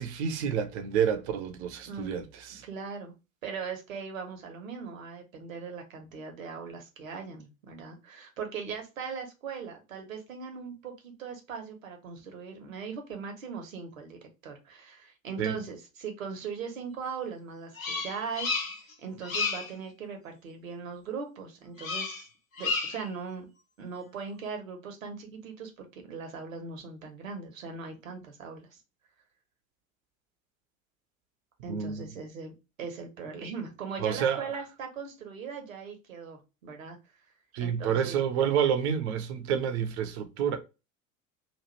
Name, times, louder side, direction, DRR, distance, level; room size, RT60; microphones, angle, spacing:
voice 1, 0.0-2.6 15.4-15.6 31.7-32.1 34.0-34.5 37.5-40.6, right 8 dB, 50° right, 0.8 m, -29 dB
voice 2, 2.6-3.1 3.4-18.5 19.0-22.3 22.6-23.5 23.8-28.8 31.6-32.5 32.8-37.0 37.6-38.2, right 5 dB, 70° right, 1.1 m, -39 dB
Bird vocalization bird call bird song, 17.8-18.9 19.2-19.7 21.8-22.2 22.5-23.1, left 4 dB, 75° left, 1.1 m, -32 dB
3.1 x 2.5 x 3.0 m
figure-of-eight pair, 75°, 41 cm